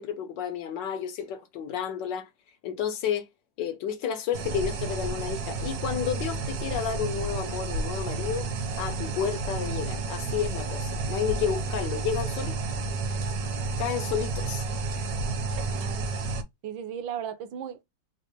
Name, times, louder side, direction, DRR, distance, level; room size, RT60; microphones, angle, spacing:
voice 1, 0.0-2.3 2.6-3.3 3.6-8.5 8.8-12.6 13.8-14.7, left 8 dB, 70° left, 1.3 m, -31 dB
sound 1, 4.3-16.4, right 3 dB, 60° right, 1.0 m, -31 dB
voice 2, 15.7-16.1 16.6-17.8, right 9 dB, 80° right, 1.4 m, -36 dB
4.1 x 2.4 x 2.9 m
omnidirectional pair, 2.1 m